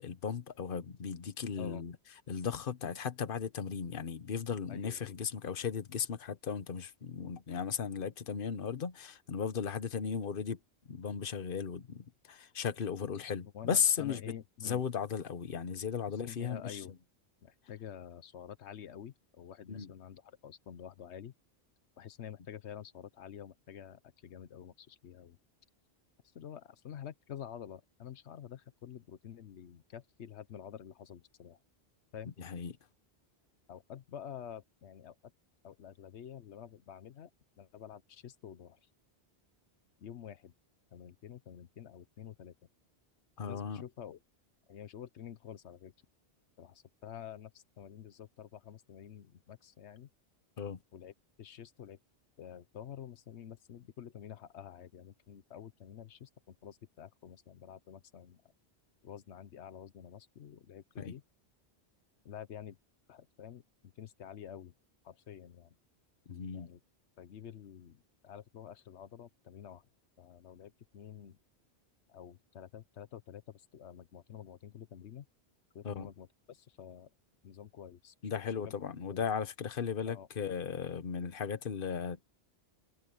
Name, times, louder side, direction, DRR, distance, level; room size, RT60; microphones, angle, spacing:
voice 1, 0.0-1.9 2.3-10.6 10.9-14.3 14.6-16.8 19.7-19.9 32.4-32.7 43.4-43.8 50.6-50.8 61.0-61.2 66.3-66.7 75.8-76.1 78.2-82.3, left 7 dB, 55° left, 1.2 m, -36 dB
voice 2, 4.7-5.1 13.0-14.8 16.1-16.9 17.4-21.3 22.0-25.4 26.3-31.6 32.1-32.3 33.7-35.2 35.6-37.3 37.6-38.8 40.0-40.5 40.9-42.5 43.4-44.2 44.7-45.9 46.6-50.1 50.9-51.1 51.4-52.0 52.4-58.4 59.0-61.2 62.2-62.8 63.1-64.7 65.0-65.7 66.5-66.8 67.2-69.8 70.2-71.4 72.1-75.2 75.7-77.1 77.4-78.7 79.1-79.2 80.1-80.3, left 9 dB, 85° left, 1.1 m, -49 dB
omnidirectional pair, 1.1 m